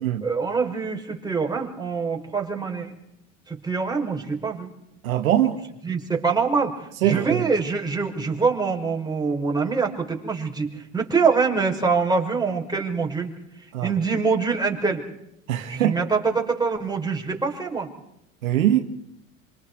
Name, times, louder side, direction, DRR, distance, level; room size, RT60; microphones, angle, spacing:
voice 1, 0.2-2.9 3.5-4.7 5.8-13.3 13.8-15.0 15.7-17.9, right 5 dB, 10° right, 5.6 m, -24 dB
voice 2, 5.0-5.6 7.0-7.4 13.7-13.9 15.5-16.0 18.4-18.8, right 12 dB, 75° right, 2.1 m, -22 dB
27.0 x 26.0 x 4.8 m
hypercardioid pair, 85°, 41 cm